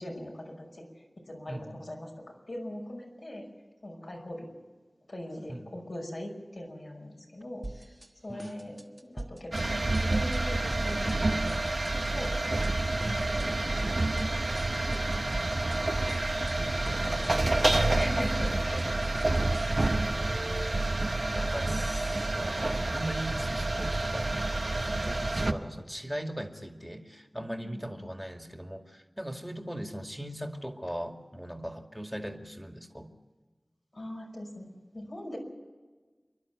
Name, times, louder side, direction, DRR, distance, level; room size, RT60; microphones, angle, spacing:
voice 1, 0.0-2.1 2.5-3.5 3.8-4.5 5.1-7.6 8.2-8.7 9.0-14.3 15.0-15.8 16.6-18.9 27.5-28.1 33.9-35.4, left 1 dB, 70° left, -1 dB, 5.7 m, -41 dB
voice 2, 1.5-1.8 5.5-5.7 8.3-8.7 14.9-15.6 18.9-19.1 20.2-24.4 24.8-33.1, equal, ahead, 3 dB, 2.3 m, -40 dB
sound 1, 7.6-8.1 8.4-9.6 9.9-10.4 10.7-11.2 11.5-12.7 13.0-13.5 13.8-14.3 14.5-15.8 16.1-16.6 16.9-19.9, right 1 dB, 35° right, 1.5 m, -44 dB
sound 2, 9.5-25.5, right 2 dB, 60° right, 1.0 m, -28 dB
28.0 x 11.5 x 8.1 m, 1.3 s
wide cardioid pair, 45°, 0 cm